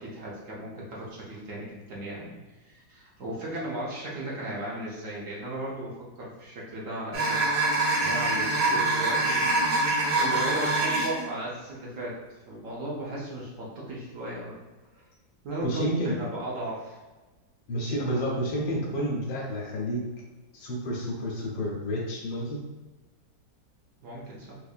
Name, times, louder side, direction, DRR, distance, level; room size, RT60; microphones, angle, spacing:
voice 1, 0.0-7.7 8.0-12.2 12.5-14.6 14.9-15.0 15.4-17.0 24.0-24.6, right 1 dB, 55° right, -5 dB, 0.9 m, -36 dB
sound 1, 7.1-11.2, right 2 dB, 85° right, 1.7 m, -25 dB
voice 2, 15.6-16.2 17.7-20.0 20.5-22.6, equal, 75° left, -2 dB, 1.5 m, -30 dB
4.4 x 2.6 x 2.4 m, 1.2 s
omnidirectional pair, 2.1 m